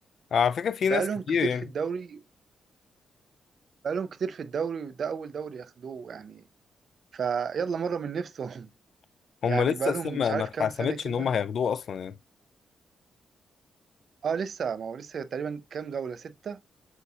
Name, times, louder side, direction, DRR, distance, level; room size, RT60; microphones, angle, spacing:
voice 1, 0.3-1.6 9.4-12.2, left 7 dB, 60° left, 0.3 m, -27 dB
voice 2, 0.9-2.2 3.8-6.4 7.1-8.7 9.4-11.3 14.2-16.6, right 6 dB, 55° right, 0.4 m, -32 dB
7.9 x 2.8 x 2.3 m
cardioid pair, 125°, 0 cm